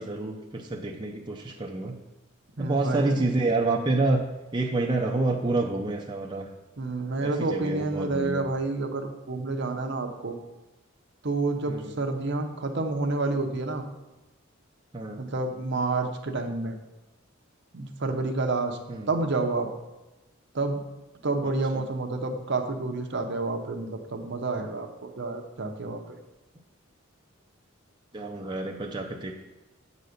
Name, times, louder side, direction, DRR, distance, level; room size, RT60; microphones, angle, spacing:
voice 1, 0.0-1.9 2.6-4.2 4.5-6.5 7.2-8.4 11.7-11.9 14.9-15.2 18.9-19.1 21.7-21.8 28.1-29.3, right 2 dB, 20° right, 0 dB, 0.6 m, -28 dB
voice 2, 2.6-3.2 6.8-10.4 11.2-13.8 15.2-16.7 17.7-18.8 19.1-19.7 20.5-20.8 21.2-26.2, right 3 dB, 55° right, 4 dB, 0.8 m, -29 dB
7.8 x 4.1 x 6.5 m, 1.0 s
head